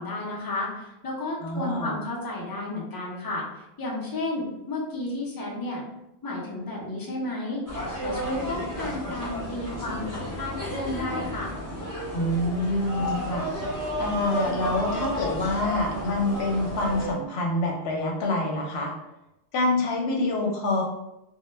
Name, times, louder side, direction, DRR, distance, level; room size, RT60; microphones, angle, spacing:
voice 1, 0.0-5.8 6.2-7.6 8.0-11.6, left 2 dB, 30° left, -3 dB, 0.4 m, -32 dB
voice 2, 1.4-2.0 12.1-18.9 19.5-20.8, left 2 dB, 75° left, 0 dB, 0.9 m, -27 dB
sound 1, 7.7-17.1, equal, 20° right, 0.7 m, -32 dB
2.1 x 2.1 x 3.1 m, 0.89 s
omnidirectional pair, 1.1 m